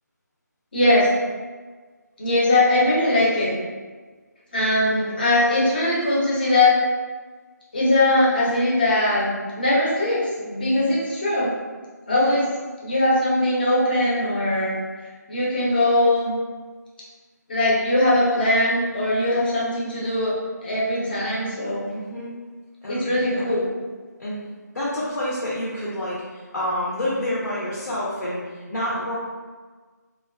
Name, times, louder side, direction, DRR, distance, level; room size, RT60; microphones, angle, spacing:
voice 1, 0.7-1.1 2.2-3.6 4.5-6.8 7.7-11.6 12.1-12.5 12.8-14.8 15.3-16.4 17.5-21.9 22.9-23.7, left 1 dB, 30° left, -6 dB, 0.6 m, -21 dB
voice 2, 4.7-5.2 12.1-12.4 21.9-22.3 22.8-23.5 24.2-24.4 24.7-29.2, left 1 dB, 75° left, -7 dB, 0.7 m, -29 dB
2.4 x 2.3 x 2.2 m, 1.4 s
figure-of-eight pair, 170°, 10 cm